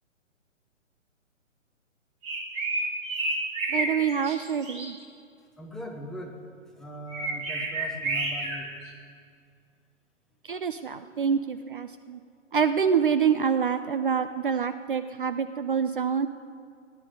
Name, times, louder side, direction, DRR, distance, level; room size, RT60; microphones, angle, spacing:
sound 1, 2.2-3.9 4.2-4.9 7.1-8.6, right 2 dB, 15° right, 2.0 m, -30 dB
voice 1, 3.7-4.9 10.4-12.2 12.5-16.3, right 7 dB, 40° right, 10 dB, 0.5 m, -26 dB
voice 2, 5.6-6.4 6.8-8.8, equal, ahead, 0 dB, 0.9 m, -40 dB
17.5 x 10.5 x 7.9 m, 2.2 s
figure-of-eight pair, 135°, 39 cm